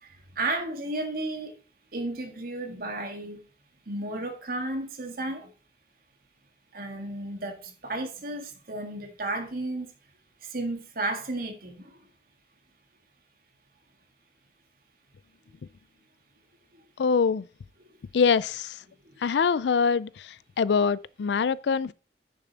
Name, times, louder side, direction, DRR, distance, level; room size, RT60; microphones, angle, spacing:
voice 1, 0.4-1.5 1.9-3.4 3.9-5.5 6.7-9.9 10.4-12.0, right 2 dB, 55° right, 1.8 m, -33 dB
voice 2, 17.0-17.5 18.1-18.8 19.2-21.9, left 5 dB, 75° left, 0.4 m, -24 dB
9.6 x 6.7 x 4.0 m
head